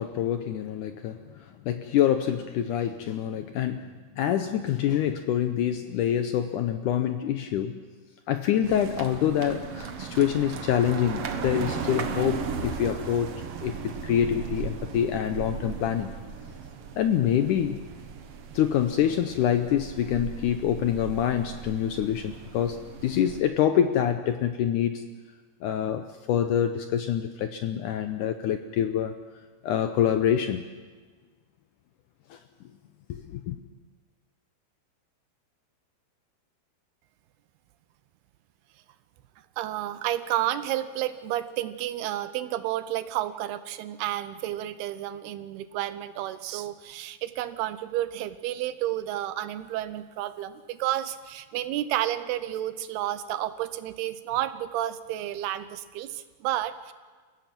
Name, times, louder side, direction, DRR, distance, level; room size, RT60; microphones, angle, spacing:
voice 1, 0.0-3.9 4.2-7.8 8.3-16.1 17.0-17.8 18.5-25.1 25.6-29.1 29.6-30.7 32.3-32.4 33.1-33.6, left 10 dB, 75° left, 8 dB, 1.9 m, -26 dB
sound 1, 8.6-23.4, right 5 dB, 65° right, 1.5 m, -37 dB
voice 2, 39.6-56.9, right 13 dB, 85° right, 12 dB, 2.9 m, -31 dB
29.5 x 16.0 x 6.0 m, 1.4 s
omnidirectional pair, 4.4 m